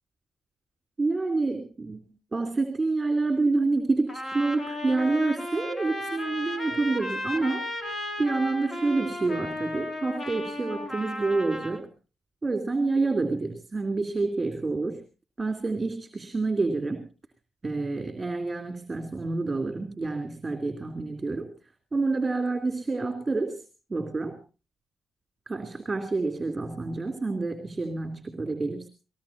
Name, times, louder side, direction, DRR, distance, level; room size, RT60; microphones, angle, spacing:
voice 1, 1.0-7.6 8.2-11.9 12.4-15.0 15.4-17.1 17.6-21.5 21.9-23.6 23.9-24.4 25.5-28.9, right 3 dB, 20° right, 5 dB, 3.0 m, -28 dB
Trumpet, 4.1-11.8, left 1 dB, 25° left, 3.2 m, -34 dB
22.0 x 19.0 x 2.7 m, 0.34 s
cardioid pair, 90°, 0 cm